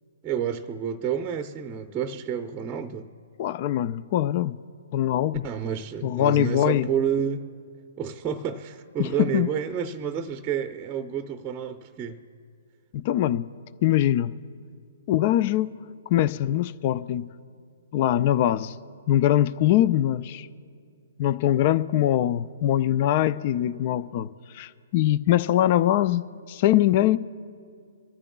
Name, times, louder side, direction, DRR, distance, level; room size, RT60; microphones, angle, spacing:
voice 1, 0.2-3.1 5.4-7.4 8.0-12.2, right 8 dB, 20° right, 6 dB, 0.7 m, -29 dB
voice 2, 3.4-4.6 4.9-5.4 6.0-6.9 9.0-9.5 12.9-13.5 13.8-14.3 15.1-15.8 16.1-17.3 17.9-18.8 19.1-20.5 21.2-27.2, left 12 dB, 40° left, 16 dB, 0.4 m, -22 dB
26.0 x 13.5 x 2.3 m, 2.2 s
hypercardioid pair, 130°, 0 cm